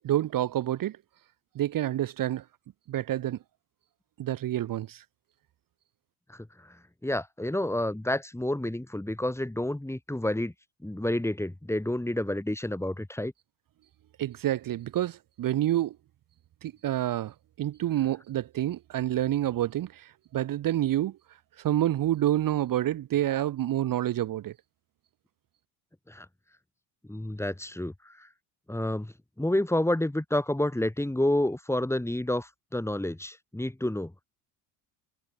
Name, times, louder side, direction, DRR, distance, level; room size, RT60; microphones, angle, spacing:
voice 1, 0.0-1.0 1.5-2.4 2.9-3.4 4.2-5.0 14.2-15.9 16.6-21.1 21.6-24.5, right 13 dB, 45° right, 1.4 m, -28 dB
voice 2, 7.0-10.5 10.8-13.3 26.1-26.3 27.1-28.3 28.7-34.1, left 1 dB, 5° left, 4.4 m, -29 dB
hypercardioid pair, 70°, 45 cm